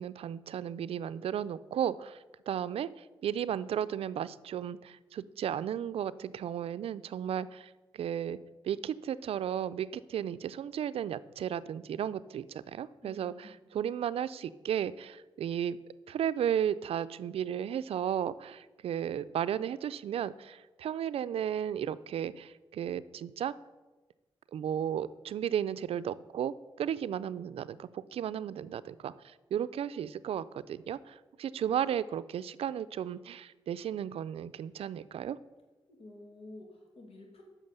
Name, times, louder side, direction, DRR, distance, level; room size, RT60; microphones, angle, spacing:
voice 1, 0.0-2.2 2.5-2.9 3.2-8.4 8.6-15.8 16.1-23.5 24.5-35.4, right 9 dB, 80° right, 15 dB, 0.4 m, -34 dB
voice 2, 13.0-13.6 35.9-37.4, left 2 dB, 80° left, 2 dB, 2.4 m, -51 dB
9.0 x 6.3 x 6.7 m, 1.2 s
cardioid pair, 65°, 10 cm